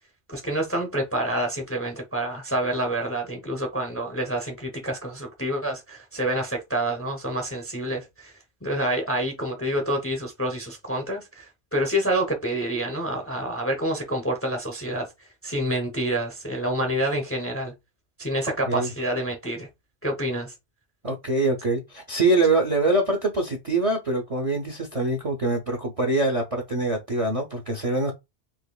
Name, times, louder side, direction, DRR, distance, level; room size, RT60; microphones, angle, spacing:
voice 1, 0.3-8.3 8.6-15.1 15.4-17.7 18.2-19.7 20.0-20.5, right 1 dB, 15° left, 0.5 m, -27 dB
voice 2, 21.0-28.1, right 2 dB, 45° right, 0.5 m, -24 dB
4.2 x 2.9 x 2.2 m
omnidirectional pair, 1.2 m